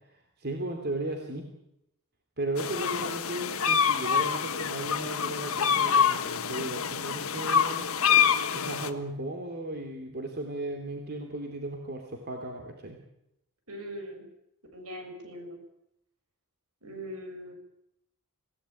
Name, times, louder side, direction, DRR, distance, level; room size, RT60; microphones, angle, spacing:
voice 1, 0.0-1.5 2.4-7.9 8.5-13.0, right 1 dB, 45° right, 3 dB, 3.1 m, -36 dB
sound 1, 2.6-8.9, left 7 dB, 65° left, 1.5 m, -26 dB
voice 2, 13.7-14.3 14.7-15.6 16.8-17.5, equal, 70° right, 5 dB, 6.8 m, -41 dB
26.5 x 17.0 x 9.2 m, 0.81 s
head